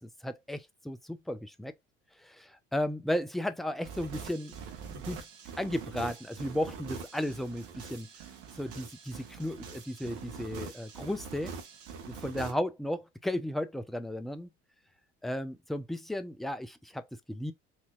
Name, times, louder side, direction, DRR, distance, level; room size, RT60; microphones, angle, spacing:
voice 1, 0.0-1.7 2.2-4.5 4.8-5.2 5.6-8.1 8.6-11.5 12.1-14.5 15.2-17.5, left 1 dB, ahead, 0.5 m, -34 dB
sound 1, 3.8-12.5, right 5 dB, 55° right, 1.3 m, -44 dB
4.5 x 2.7 x 2.4 m
figure-of-eight pair, 65°, 36 cm